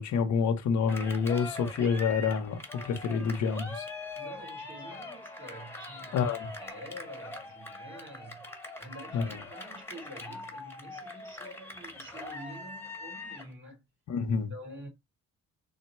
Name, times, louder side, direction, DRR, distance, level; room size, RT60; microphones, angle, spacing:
voice 1, 0.0-3.9 6.1-6.5 9.1-9.2 14.1-14.5, left 6 dB, 70° left, 0.8 m, -28 dB
Cheering, 0.9-13.5, left 2 dB, 10° left, 1.2 m, -42 dB
voice 2, 4.2-13.8 14.5-14.9, equal, 40° right, 2.4 m, -48 dB
3.9 x 2.1 x 4.2 m
cardioid pair, 90°, 30 cm